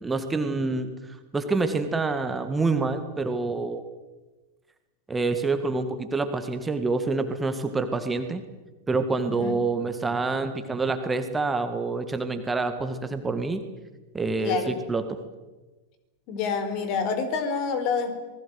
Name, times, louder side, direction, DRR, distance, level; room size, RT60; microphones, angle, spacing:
voice 1, 0.0-3.8 5.1-8.4 8.9-13.6 14.1-15.2, right 3 dB, 10° right, 8 dB, 2.0 m, -27 dB
voice 2, 9.3-9.6 14.4-14.7 16.3-18.1, left 5 dB, 45° left, 10 dB, 4.0 m, -27 dB
27.0 x 20.5 x 7.9 m, 1.2 s
figure-of-eight pair, 90°, 0 cm